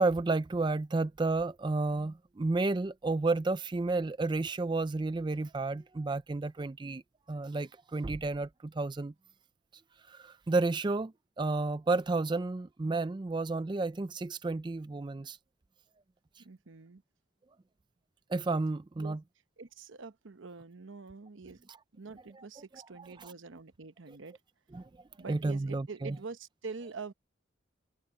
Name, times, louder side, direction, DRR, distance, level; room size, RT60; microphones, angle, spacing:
voice 1, 0.0-7.0 7.3-9.1 10.1-11.1 11.4-15.4 18.3-19.2 24.7-24.9 25.3-26.1, right 3 dB, 25° right, 0.4 m, -31 dB
voice 2, 16.4-17.0 19.0-19.2 19.6-21.6 21.9-24.4 25.2-27.1, right 4 dB, 75° right, 0.9 m, -45 dB
head